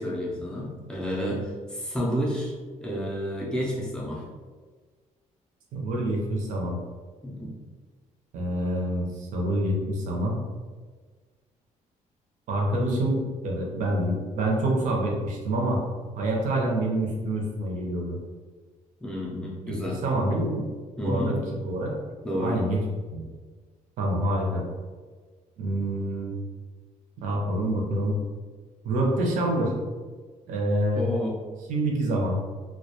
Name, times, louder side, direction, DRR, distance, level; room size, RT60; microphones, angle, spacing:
voice 1, 0.0-2.5 2.8-4.2 7.2-7.5 19.0-20.0 21.0-21.3 22.2-22.6 30.9-31.3, equal, 5° left, -4 dB, 0.4 m, -30 dB
voice 2, 5.7-6.8 8.3-10.4 12.5-15.8 16.2-18.2 19.6-19.7 20.0-20.6 21.0-21.4 21.6-21.9 22.4-22.8 23.1-23.2 24.0-24.6 25.6-26.3 27.2-28.2 28.8-29.7 30.5-31.0 31.7-32.4, right 1 dB, 65° right, -2 dB, 0.6 m, -26 dB
2.2 x 2.1 x 2.8 m, 1.5 s
cardioid pair, 180°, 14 cm